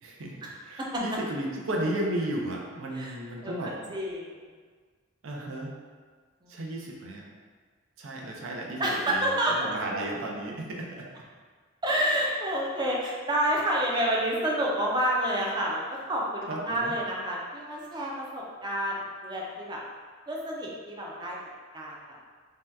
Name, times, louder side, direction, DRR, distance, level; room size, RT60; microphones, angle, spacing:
voice 1, 0.0-3.9 5.2-5.7 6.5-7.3 8.0-11.1 16.5-16.9, right 1 dB, 75° right, -1 dB, 0.5 m, -34 dB
voice 2, 3.4-4.4 6.4-6.6 8.8-9.5 11.8-19.8 20.3-21.4 21.7-22.2, right 1 dB, 20° right, -3 dB, 0.4 m, -29 dB
2.7 x 2.2 x 3.3 m, 1.5 s
head